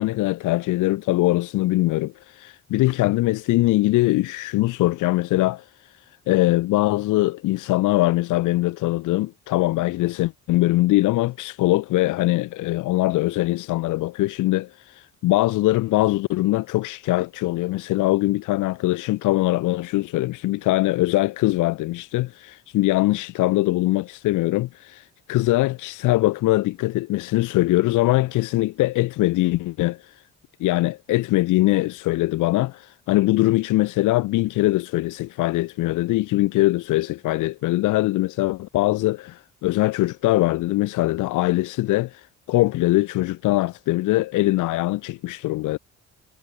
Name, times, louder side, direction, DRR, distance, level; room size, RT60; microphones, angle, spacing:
voice 1, 0.0-30.2 30.6-45.8, left 18 dB, 85° left, 0.7 m, -22 dB
cardioid pair, 90°, 30 cm